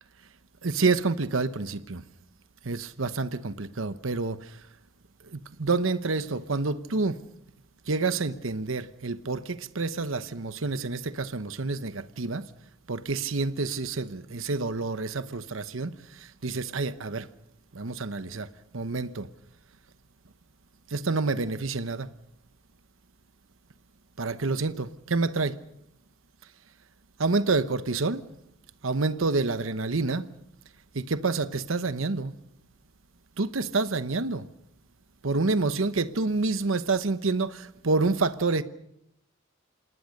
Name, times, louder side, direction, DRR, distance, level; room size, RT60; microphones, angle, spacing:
voice 1, 0.6-2.0 2.6-4.6 5.3-7.2 7.9-12.5 12.9-17.3 17.7-18.5 18.7-19.3 20.9-22.1 24.2-25.6 27.2-28.2 28.8-30.3 30.9-32.3 33.4-34.5 35.2-38.6, right 3 dB, 80° right, 1.0 m, -28 dB
27.5 x 19.0 x 6.6 m
head